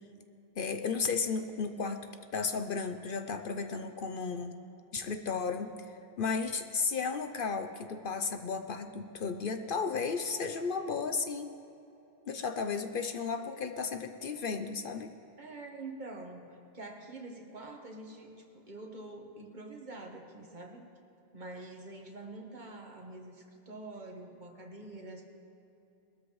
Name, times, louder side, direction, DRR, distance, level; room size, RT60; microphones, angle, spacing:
voice 1, 0.6-2.1 2.3-4.5 4.9-5.7 6.2-11.5 12.3-15.1, left 5 dB, 60° left, 7 dB, 0.8 m, -34 dB
voice 2, 15.4-20.8 21.3-25.2, right 2 dB, 50° right, 1 dB, 1.6 m, -46 dB
21.0 x 13.0 x 3.2 m, 2.9 s
omnidirectional pair, 1.1 m